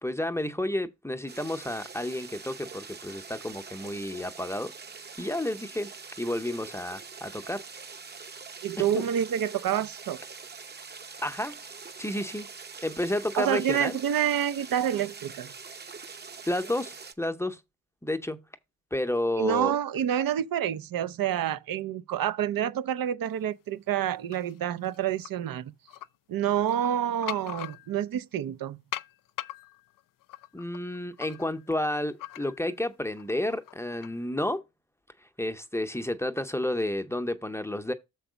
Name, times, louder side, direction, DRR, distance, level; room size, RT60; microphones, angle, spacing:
voice 1, 0.0-4.7 5.2-5.9 6.2-7.6 8.8-9.1 11.2-11.6 12.0-12.5 12.8-14.0 16.5-17.6 18.0-18.4 18.9-19.7 30.5-34.6 35.4-37.9, left 1 dB, 10° left, 0.6 m, -31 dB
sound 1, 1.3-17.1, right 5 dB, 30° right, 0.7 m, -44 dB
voice 2, 8.6-10.2 13.4-15.5 19.4-25.7 26.3-28.8, right 10 dB, 75° right, 0.6 m, -28 dB
sound 2, 24.3-25.3 25.9-26.1 26.6-28.2 28.9-32.8 33.2-34.2, left 14 dB, 70° left, 0.5 m, -41 dB
7.0 x 4.5 x 4.9 m
wide cardioid pair, 125°, 34 cm